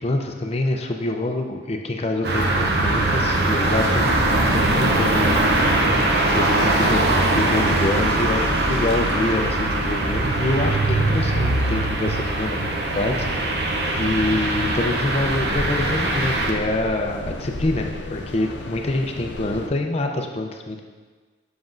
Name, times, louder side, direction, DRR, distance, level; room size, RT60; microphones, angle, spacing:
voice 1, 0.0-5.4 6.4-7.0 7.3-13.3 14.0-20.8, left 2 dB, 35° left, 3 dB, 0.5 m, -26 dB
sound 1, 2.2-16.5, right 2 dB, 60° right, 0.7 m, -21 dB
sound 2, 12.9-19.7, left 2 dB, 80° left, 0.5 m, -34 dB
7.4 x 5.9 x 2.6 m, 1.4 s
head